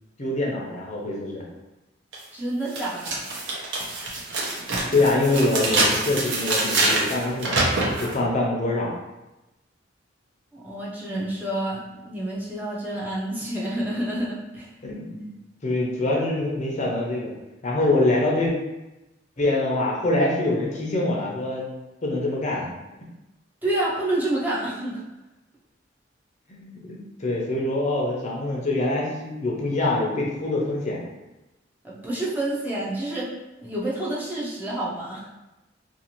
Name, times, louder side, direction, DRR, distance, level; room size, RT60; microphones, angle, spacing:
voice 1, 0.2-1.4 4.9-7.6 8.0-8.9 14.8-15.3 15.6-17.3 17.6-18.5 19.4-21.7 22.0-22.7 26.5-31.1, left 2 dB, 40° left, -2 dB, 0.6 m, -24 dB
sound 1, 2.1-2.2 2.7-8.1, right 2 dB, 70° right, 0.7 m, -25 dB
voice 2, 2.3-3.3 10.5-14.7 23.6-25.0 31.8-33.3 33.6-35.3, right 1 dB, 10° right, -7 dB, 0.5 m, -28 dB
2.5 x 2.4 x 2.9 m, 1.0 s
head